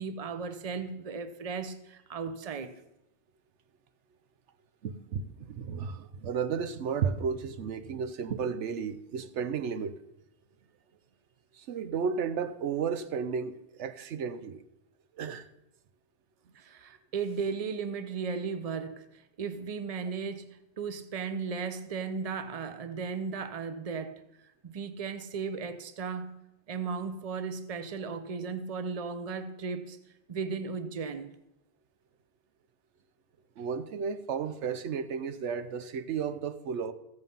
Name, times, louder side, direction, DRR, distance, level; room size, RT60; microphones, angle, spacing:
voice 1, 0.0-2.7 16.5-24.2 24.6-26.3 26.7-30.0 30.3-31.3, right 5 dB, 35° right, 0.8 m, -36 dB
voice 2, 4.8-10.0 11.5-14.6 15.1-15.5 33.6-36.9, right 6 dB, 90° right, 1.1 m, -33 dB
15.0 x 8.1 x 5.4 m
omnidirectional pair, 1.2 m